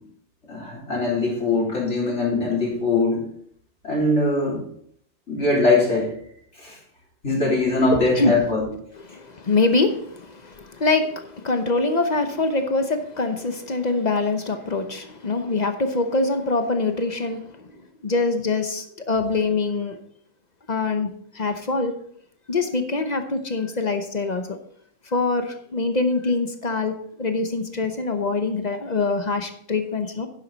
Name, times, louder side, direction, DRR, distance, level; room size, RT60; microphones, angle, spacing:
voice 1, 0.5-3.2 3.8-4.6 5.3-6.1 6.6-6.8 7.2-8.6, left 2 dB, 60° left, -5 dB, 3.8 m, -21 dB
voice 2, 7.9-8.3 9.1-20.0 20.7-21.9 22.5-24.6 25.1-30.3, left 3 dB, 40° left, 7 dB, 0.9 m, -24 dB
10.5 x 7.6 x 4.0 m, 0.65 s
omnidirectional pair, 1.3 m